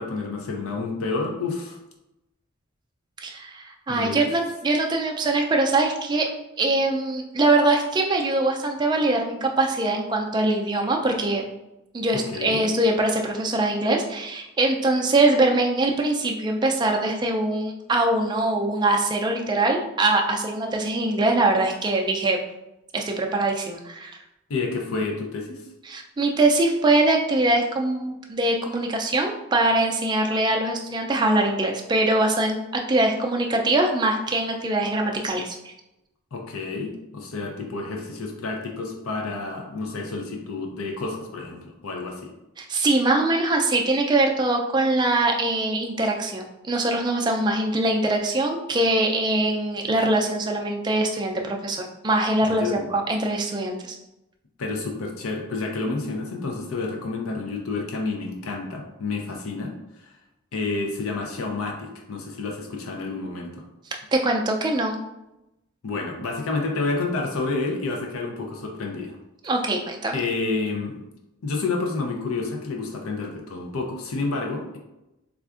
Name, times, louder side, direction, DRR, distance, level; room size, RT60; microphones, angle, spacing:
voice 1, 0.0-1.8 3.9-4.3 12.1-12.6 24.5-25.6 36.3-42.2 52.4-52.9 54.6-59.7 60.0-60.1 60.5-63.6 65.8-69.1 70.1-71.0 71.4-74.8, left 3 dB, 90° left, 1 dB, 0.5 m, -29 dB
voice 2, 3.2-6.3 6.6-11.5 11.9-22.4 22.9-24.2 25.9-35.6 42.6-54.0 64.1-65.0 69.4-70.2, right 2 dB, 20° right, 1 dB, 0.3 m, -23 dB
4.3 x 2.4 x 2.4 m, 0.92 s
head